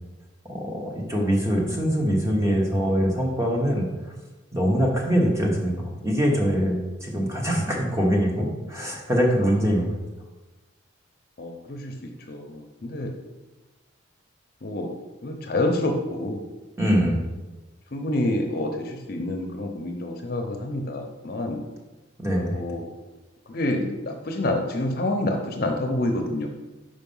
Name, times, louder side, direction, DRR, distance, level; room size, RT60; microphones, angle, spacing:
voice 1, 0.5-3.8 4.5-9.9 16.8-17.2 22.2-22.6, equal, 15° right, -1 dB, 1.1 m, -23 dB
voice 2, 11.4-13.1 14.6-14.9 15.2-16.4 16.9-17.1 17.9-21.6 22.4-22.9 23.5-26.5, left 1 dB, 50° left, 3 dB, 0.7 m, -28 dB
5.2 x 4.9 x 5.4 m, 1.2 s
head